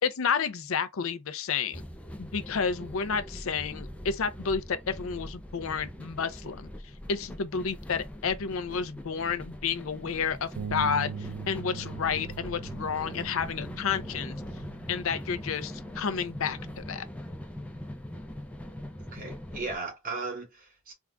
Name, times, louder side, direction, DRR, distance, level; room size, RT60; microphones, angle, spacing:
voice 1, 0.0-1.8 2.2-6.7 7.1-14.3 14.9-17.0, left 6 dB, 65° left, 0.5 m, -31 dB
sound 1, 1.7-19.8, left 1 dB, 5° left, 0.4 m, -42 dB
Bass guitar, 10.6-16.8, right 7 dB, 80° right, 0.3 m, -42 dB
voice 2, 19.1-20.9, right 3 dB, 40° right, 1.3 m, -36 dB
3.6 x 2.4 x 3.3 m
head